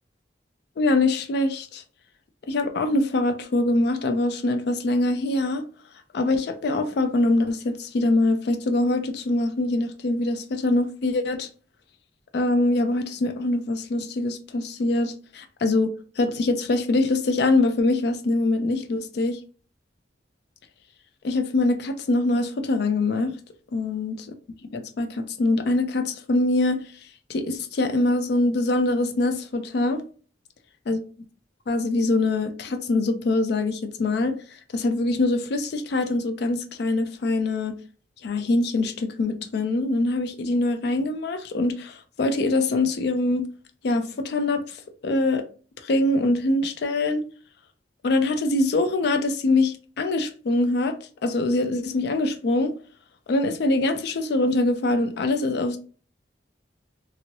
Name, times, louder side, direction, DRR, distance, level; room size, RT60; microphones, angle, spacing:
voice 1, 0.8-1.8 2.5-5.6 6.1-11.5 12.3-19.4 21.2-23.3 23.7-24.2 24.7-26.8 27.3-30.0 30.9-31.0 31.7-34.4 34.7-37.7 38.2-43.5 43.8-44.6 45.0-45.4 45.8-47.2 48.0-50.9 51.2-52.7 53.3-55.8, left 2 dB, 65° left, 0.4 m, -23 dB
2.8 x 2.6 x 2.9 m
head